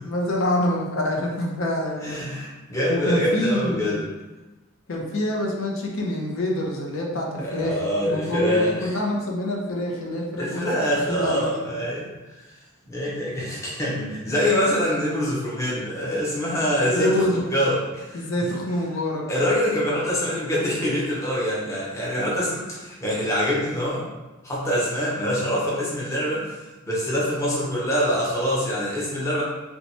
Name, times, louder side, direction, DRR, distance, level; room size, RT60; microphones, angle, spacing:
voice 1, 0.0-2.2 2.9-4.0 4.9-7.8 8.0-11.6 16.8-17.7 18.1-19.2, left 1 dB, 85° left, -1 dB, 0.6 m, -26 dB
voice 2, 2.0-4.1 7.4-9.0 10.4-12.5 12.9-18.3 19.3-24.1 24.4-29.4, equal, 15° left, -6 dB, 0.7 m, -25 dB
2.8 x 2.2 x 4.1 m, 1.1 s
head